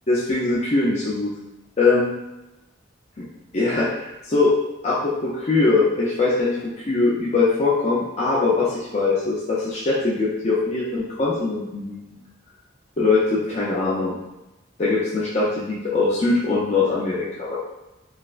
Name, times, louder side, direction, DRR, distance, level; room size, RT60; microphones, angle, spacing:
voice 1, 0.1-1.3 1.8-2.1 3.2-3.3 3.5-4.5 4.8-12.0 13.0-14.1 14.8-17.6, left 3 dB, 35° left, -7 dB, 0.5 m, -22 dB
4.6 x 2.1 x 2.4 m, 0.98 s
head